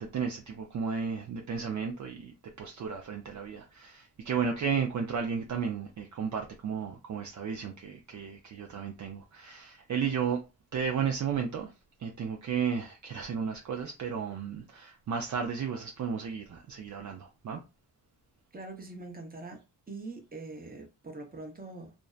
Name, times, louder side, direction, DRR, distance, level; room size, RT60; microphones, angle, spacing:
voice 1, 0.0-10.4 10.7-11.7 12.0-17.6, right 6 dB, 50° right, 0.5 m, -33 dB
voice 2, 18.5-21.9, right 3 dB, 25° right, 0.8 m, -43 dB
2.5 x 2.1 x 2.3 m
cardioid pair, 80°, 39 cm